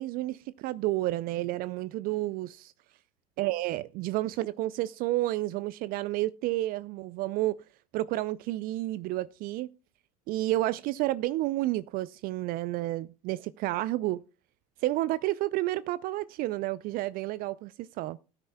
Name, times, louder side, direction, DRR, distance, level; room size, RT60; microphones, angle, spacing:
voice 1, 0.0-2.7 3.4-7.6 7.9-9.7 10.3-14.2 14.8-18.2, right 16 dB, 45° right, 0.4 m, -30 dB
17.5 x 9.5 x 2.2 m
hypercardioid pair, 75°, 20 cm